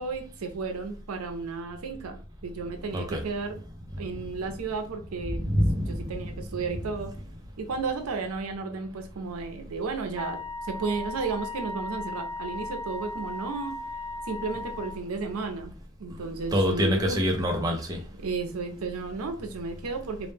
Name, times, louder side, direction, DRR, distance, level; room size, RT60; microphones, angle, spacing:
voice 1, 0.0-3.6 4.0-5.4 5.9-7.1 7.6-13.8 14.3-15.7 16.0-17.3 18.2-20.3, right 4 dB, 85° right, 0.5 m, -33 dB
voice 2, 5.4-6.0 16.5-18.0, equal, 15° right, 0.4 m, -25 dB
Wind instrument woodwind instrument, 10.1-15.0, left 2 dB, 30° left, 0.9 m, -36 dB
2.1 x 2.1 x 3.2 m
head